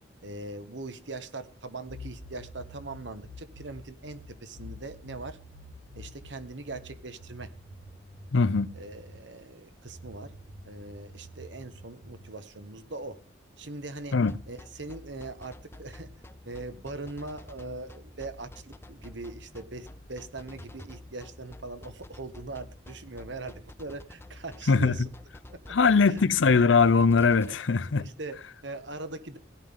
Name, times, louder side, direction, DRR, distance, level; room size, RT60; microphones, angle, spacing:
voice 1, 0.2-5.4 5.9-7.5 8.7-10.3 10.6-13.2 13.6-14.1 14.5-16.1 16.4-25.0 25.5-25.6 26.1-26.2 27.4-27.6 28.0-29.4, right 2 dB, 65° right, 1.4 m, -41 dB
sound 1, 1.9-9.2 9.9-12.3, left 1 dB, 85° right, 2.7 m, -47 dB
voice 2, 8.3-8.7 14.1-14.4 24.7-25.1 25.7-28.1, left 4 dB, 80° left, 0.6 m, -21 dB
sound 2, 14.3-27.5, left 1 dB, 15° left, 0.6 m, -48 dB
16.5 x 10.5 x 3.7 m
head